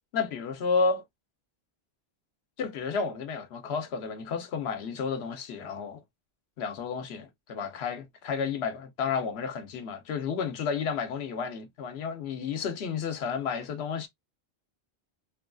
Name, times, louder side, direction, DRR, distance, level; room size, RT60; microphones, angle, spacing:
voice 1, 0.1-1.0 2.6-6.0 6.6-14.1, left 5 dB, 90° left, 1.0 m, -31 dB
3.0 x 2.3 x 2.3 m
omnidirectional pair, 1.0 m